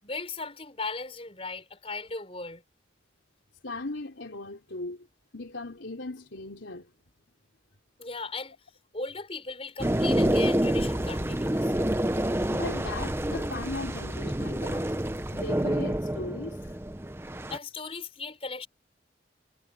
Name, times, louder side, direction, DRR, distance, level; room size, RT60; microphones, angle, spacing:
voice 1, 0.0-2.6 8.0-8.6 8.9-11.7 12.2-12.3 17.5-18.7, left 3 dB, 30° left, 5.9 m, -37 dB
voice 2, 3.6-5.1 5.3-6.9 12.0-14.9 15.3-16.8, left 2 dB, 80° left, 3.4 m, -38 dB
sound 1, 9.8-17.6, right 1 dB, 15° right, 0.8 m, -28 dB
head